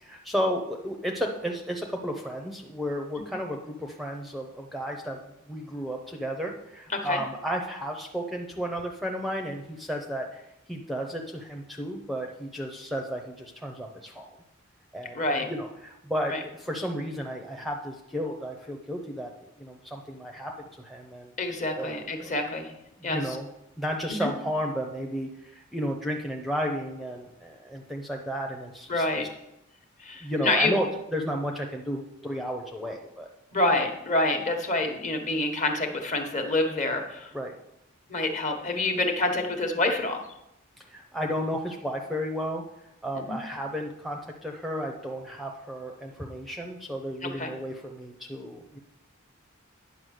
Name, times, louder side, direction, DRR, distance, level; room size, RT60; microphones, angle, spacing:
voice 1, 0.0-5.2 5.5-10.4 10.7-14.3 14.9-19.3 19.6-20.5 20.8-21.3 21.7-21.9 22.2-22.3 23.0-23.5 23.8-29.1 30.2-30.9 31.1-33.3 37.3-37.5 40.9-42.6 43.0-48.8, equal, ahead, 1 dB, 0.7 m, -33 dB
voice 2, 15.1-15.5 16.3-16.4 21.4-22.7 23.0-23.4 24.1-24.3 28.9-29.3 30.0-30.7 33.5-37.3 38.1-40.2 43.1-43.4 47.2-47.5, left 2 dB, 35° left, 4 dB, 1.2 m, -27 dB
9.3 x 5.7 x 6.5 m, 0.85 s
head